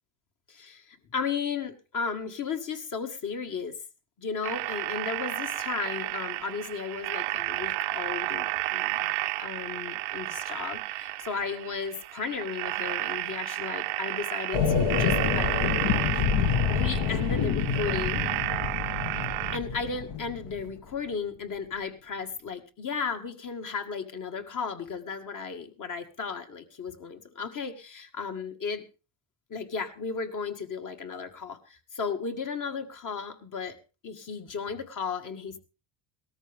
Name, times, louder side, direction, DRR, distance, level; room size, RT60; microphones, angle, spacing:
voice 1, 0.5-3.8 4.2-9.1 9.4-15.5 16.7-18.2 19.5-28.9 29.5-33.8 34.0-35.6, left 5 dB, 40° left, 6 dB, 2.1 m, -35 dB
sound 1, 4.4-19.6, right 19 dB, 75° right, 0.8 m, -32 dB
sound 2, 14.5-20.7, left 6 dB, 55° left, 1.6 m, -27 dB
18.5 x 13.5 x 3.6 m, 0.32 s
supercardioid pair, 100°, 47 cm